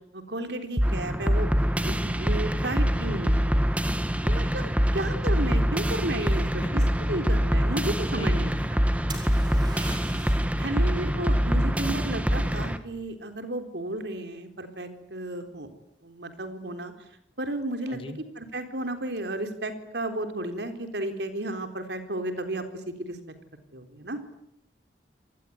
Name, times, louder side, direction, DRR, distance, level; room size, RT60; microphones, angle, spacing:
voice 1, 0.1-1.5 1.8-3.5 4.2-6.8 7.1-8.6 10.6-15.7 16.0-16.9 17.4-18.0 18.4-23.2 23.7-24.2, right 1 dB, 70° right, 7 dB, 3.8 m, -33 dB
sound 1, 0.8-12.8, equal, 5° right, 1.3 m, -25 dB
voice 2, 4.1-4.6 6.2-6.7 8.2-8.8 9.7-10.3 17.8-18.2, left 1 dB, 30° left, 9 dB, 2.0 m, -41 dB
sound 2, 9.1-10.6 14.2-14.7, right 3 dB, 25° right, 5.0 m, -42 dB
28.0 x 20.0 x 9.6 m, 0.80 s
head